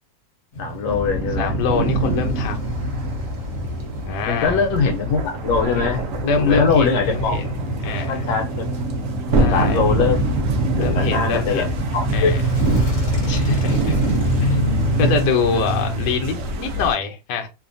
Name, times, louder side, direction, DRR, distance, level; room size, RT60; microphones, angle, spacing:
Male speech man speaking / Motorcycle / Idling, 0.5-16.5, right 1 dB, 55° left, 1.0 m, -27 dB
voice 1, 0.6-1.9 4.3-6.0 6.4-7.4 8.1-8.9 9.5-10.2 10.8-12.5 15.0-15.1, left 5 dB, 85° left, 4 dB, 1.3 m, -22 dB
sound 1, 0.9-16.9, right 2 dB, 80° right, 0.7 m, -25 dB
voice 2, 1.4-2.6 4.1-4.6 5.7-8.3 9.4-9.8 10.8-11.7 12.1-12.4 13.3-14.0 14.4-17.5, left 5 dB, 70° left, 3 dB, 1.3 m, -24 dB
3.2 x 2.2 x 2.5 m, 0.26 s
omnidirectional pair, 2.1 m